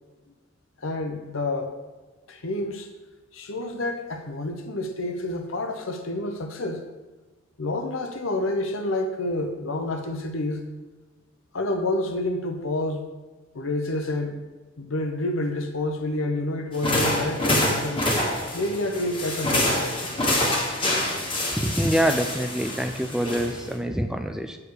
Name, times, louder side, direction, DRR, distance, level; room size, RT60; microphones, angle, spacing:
voice 1, 0.8-1.7 2.3-2.9 3.3-6.9 7.6-10.7 11.5-13.1 13.5-14.4 14.8-18.1 18.5-20.1, left 2 dB, 75° left, 5 dB, 0.9 m, -28 dB
sound 1, 16.7-23.7, left 1 dB, 25° left, 1.3 m, -26 dB
voice 2, 21.5-24.6, equal, 5° right, 7 dB, 0.4 m, -25 dB
8.5 x 4.7 x 4.8 m, 1.2 s
head